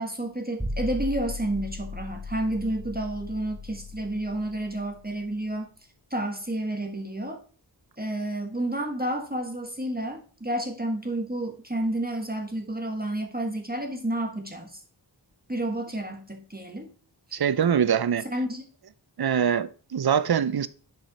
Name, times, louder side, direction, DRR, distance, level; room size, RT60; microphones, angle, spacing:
voice 1, 0.0-5.7 6.1-7.4 8.0-14.8 15.5-16.9 18.2-18.6, right 1 dB, 20° right, 1.5 m, -30 dB
sound 1, 0.6-5.6, left 2 dB, 5° right, 1.6 m, -37 dB
voice 2, 17.3-18.2 19.2-20.7, right 8 dB, 60° right, 0.6 m, -23 dB
10.0 x 5.0 x 4.1 m
wide cardioid pair, 45°, 44 cm